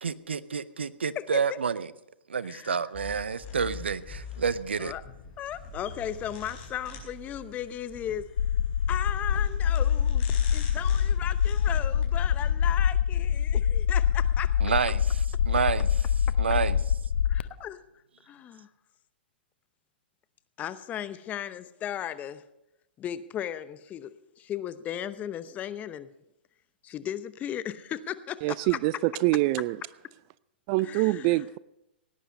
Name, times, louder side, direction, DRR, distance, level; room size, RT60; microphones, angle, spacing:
voice 1, 0.0-1.9 2.3-4.9 14.6-15.0 15.5-15.9 16.4-16.8, right 6 dB, 85° right, 0.6 m, -29 dB
sound 1, 2.9-13.6, left 3 dB, 40° left, 4.5 m, -44 dB
voice 2, 5.4-8.3 8.9-10.2 10.5-14.6 17.6-17.8 18.3-18.7 20.6-22.4 23.0-26.1 26.8-28.8 30.8-31.4, left 10 dB, 25° left, 0.8 m, -36 dB
sound 2, 8.4-17.4, left 8 dB, 85° left, 0.6 m, -25 dB
voice 3, 28.4-29.8 30.7-31.6, right 19 dB, 40° right, 0.4 m, -25 dB
17.5 x 10.0 x 5.3 m
hypercardioid pair, 120°, 6 cm